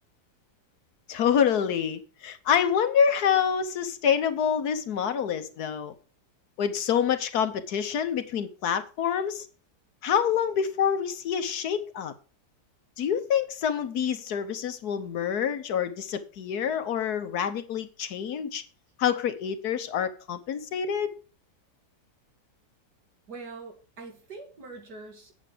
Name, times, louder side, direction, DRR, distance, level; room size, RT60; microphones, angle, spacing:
voice 1, 1.1-5.9 6.6-9.5 10.0-12.1 13.0-18.6 19.0-21.1, left 8 dB, 65° left, 1.4 m, -27 dB
voice 2, 23.3-25.3, right 3 dB, 70° right, 2.9 m, -43 dB
8.4 x 8.4 x 4.9 m
omnidirectional pair, 1.8 m